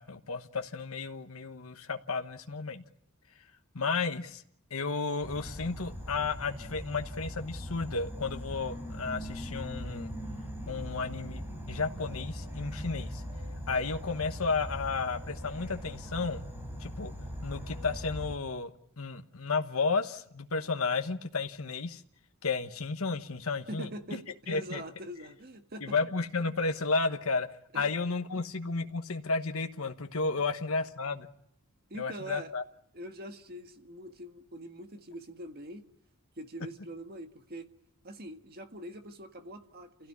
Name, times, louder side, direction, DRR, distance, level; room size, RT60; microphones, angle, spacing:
voice 1, 0.0-2.8 3.7-4.4 4.7-10.1 10.7-13.2 13.7-16.4 16.8-17.1 17.4-18.7 19.0-22.0 22.4-24.2 24.5-24.8 25.8-27.5 27.7-31.3 32.0-32.6, left 4 dB, 70° left, 1.2 m, -32 dB
Insect / Frog, 5.2-18.4, equal, 10° right, 4.4 m, -40 dB
voice 2, 23.7-25.9 27.7-27.9 31.9-32.5 32.9-35.9 36.4-37.7 38.0-40.1, right 1 dB, 45° right, 1.7 m, -43 dB
28.5 x 16.5 x 9.7 m
head